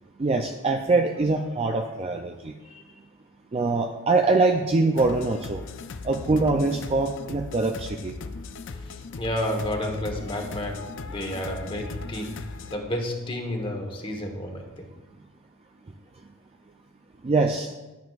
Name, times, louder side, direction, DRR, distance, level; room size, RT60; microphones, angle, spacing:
voice 1, 0.2-2.5 3.5-5.6 6.0-8.2 17.2-17.7, right 3 dB, 30° right, 4 dB, 0.4 m, -23 dB
voice 2, 2.6-3.0 8.6-14.9, left 1 dB, 25° left, 3 dB, 1.1 m, -32 dB
sound 1, 5.0-12.8, left 4 dB, 60° left, 0.5 m, -38 dB
10.5 x 9.3 x 2.4 m, 1.1 s
head